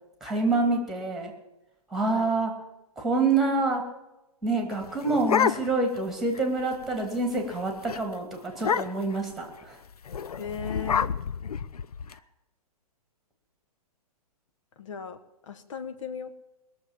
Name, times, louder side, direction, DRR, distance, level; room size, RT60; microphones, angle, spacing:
voice 1, 0.2-1.3 1.9-2.5 3.0-3.8 4.4-9.8, right 3 dB, ahead, 4 dB, 2.4 m, -27 dB
sound 1, 4.7-6.0 6.4-6.5 6.7-7.0 7.4-7.6 7.9-8.0 8.6-9.2 10.1-12.1, left 7 dB, 75° left, 0.6 m, -28 dB
voice 2, 10.4-11.1 14.8-16.3, left 6 dB, 55° left, 9 dB, 1.4 m, -37 dB
20.0 x 6.9 x 7.2 m, 0.99 s
figure-of-eight pair, 125°, 20 cm